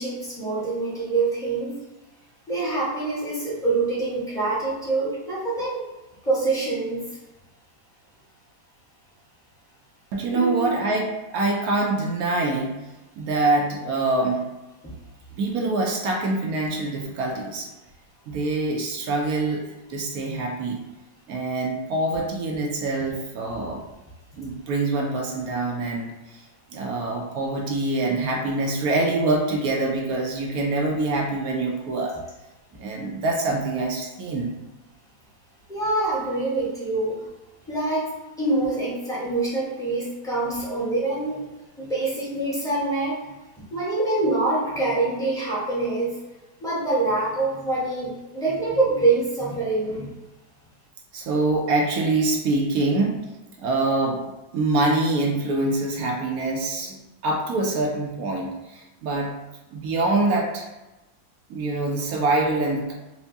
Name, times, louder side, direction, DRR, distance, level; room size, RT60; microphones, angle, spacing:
voice 1, 0.0-1.7 2.5-5.8 6.2-7.1 10.3-10.7 14.8-14.9 35.7-37.3 37.7-38.1 38.4-41.4 41.8-43.2 43.7-46.2 46.6-50.1, right 3 dB, 5° left, -8 dB, 0.8 m, -25 dB
voice 2, 10.1-12.7 13.2-14.5 15.4-17.7 18.3-19.6 19.9-20.8 21.3-23.8 24.4-26.4 26.7-32.2 32.8-34.5 51.1-53.3 53.6-59.3 59.7-60.7 61.5-62.9, right 2 dB, 70° right, 0 dB, 0.9 m, -25 dB
4.4 x 2.0 x 2.7 m, 1.0 s
omnidirectional pair, 1.8 m